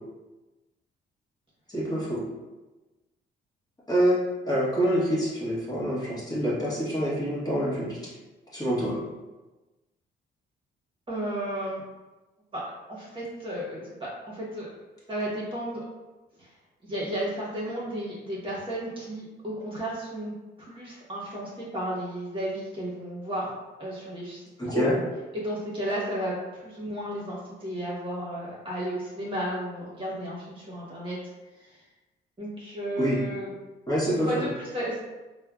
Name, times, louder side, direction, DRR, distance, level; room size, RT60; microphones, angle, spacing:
voice 1, 1.7-2.2 3.9-4.2 4.4-8.0 8.5-9.0 24.6-24.9 33.0-33.2 33.9-34.5, equal, 20° left, -8 dB, 1.1 m, -26 dB
voice 2, 11.1-11.8 12.5-12.6 12.9-14.7 15.1-15.8 16.4-16.5 16.8-20.3 20.6-23.5 23.8-24.8 25.3-31.2 31.6-31.8 32.4-33.5 34.1-35.0, right 1 dB, 25° right, -6 dB, 1.0 m, -33 dB
3.2 x 2.1 x 2.3 m, 1.1 s
cardioid pair, 90°, 20 cm